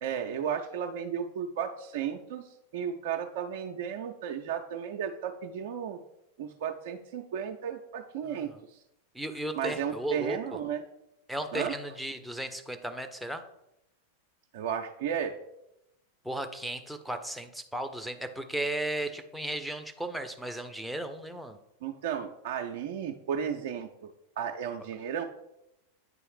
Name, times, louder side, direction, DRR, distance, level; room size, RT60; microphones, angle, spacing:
voice 1, 0.0-2.5 2.7-6.0 6.4-8.8 9.6-10.8 11.5-11.7 14.5-15.4 21.8-24.1 24.4-25.2, right 8 dB, 55° right, 3 dB, 0.4 m, -34 dB
voice 2, 8.2-8.6 9.1-10.6 11.3-13.4 16.2-21.6, right 1 dB, ahead, 6 dB, 0.6 m, -35 dB
9.1 x 3.1 x 4.7 m, 0.86 s
figure-of-eight pair, 90°, 0 cm